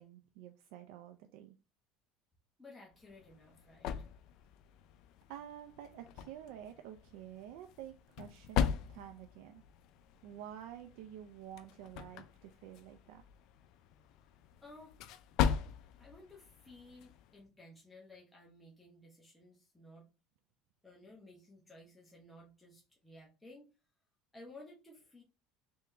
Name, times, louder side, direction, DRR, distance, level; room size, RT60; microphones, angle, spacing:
voice 1, 0.0-1.5 5.3-9.6 10.2-13.2, right 11 dB, 75° right, 5 dB, 0.4 m, -50 dB
voice 2, 2.6-4.1 14.6-14.9 16.0-20.1 20.8-23.7 24.3-25.2, left 2 dB, 5° left, -4 dB, 0.9 m, -56 dB
sound 1, 2.9-17.4, left 8 dB, 60° left, 0.4 m, -40 dB
3.5 x 3.0 x 3.3 m, 0.31 s
cardioid pair, 135°, 0 cm